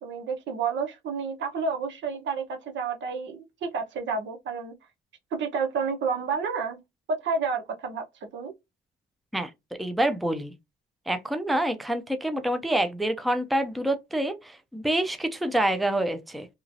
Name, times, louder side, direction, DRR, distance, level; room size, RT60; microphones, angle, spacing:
voice 1, 0.0-4.7 5.3-6.8 7.1-8.0 8.3-8.5, right 5 dB, 65° right, 0.9 m, -30 dB
voice 2, 9.8-10.5 11.1-16.5, right 1 dB, ahead, 0.5 m, -27 dB
3.0 x 2.4 x 2.6 m
cardioid pair, 90°, 20 cm